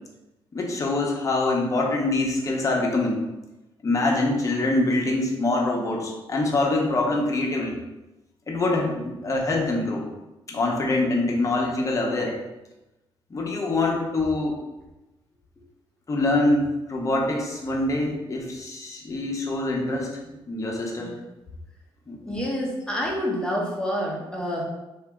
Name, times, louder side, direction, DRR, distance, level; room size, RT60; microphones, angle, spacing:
voice 1, 0.5-3.2 3.8-7.8 8.5-10.0 10.5-12.3 13.3-14.6 16.1-21.1 22.1-22.4, left 2 dB, 30° left, -1 dB, 0.8 m, -24 dB
voice 2, 22.3-24.6, equal, 10° left, -3 dB, 0.9 m, -28 dB
2.9 x 2.7 x 3.5 m, 1.0 s
cardioid pair, 90°, 10 cm